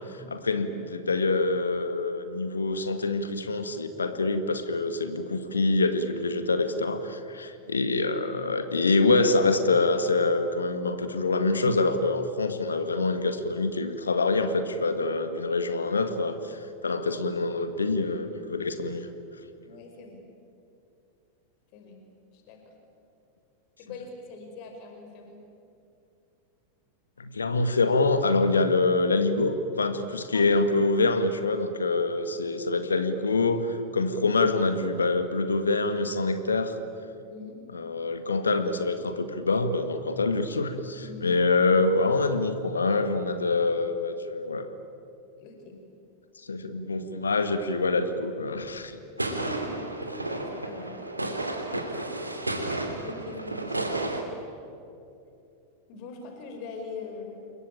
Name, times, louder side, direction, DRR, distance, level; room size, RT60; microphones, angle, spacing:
voice 1, 0.3-19.1 27.2-36.8 37.7-44.7 46.5-49.0, left 3 dB, 75° left, 9 dB, 1.8 m, -25 dB
voice 2, 19.6-20.2 21.7-22.0 22.3-22.7 23.8-25.4 30.3-30.7 37.3-37.6 40.9-41.4 45.4-45.8 49.1-51.0 51.8-52.0 53.0-53.8 55.9-57.5, left 3 dB, 45° left, 3 dB, 5.2 m, -42 dB
sound 1, 49.2-54.2, right 2 dB, 85° right, 2.8 m, -32 dB
28.5 x 22.0 x 8.9 m, 2.6 s
figure-of-eight pair, 90°, 0 cm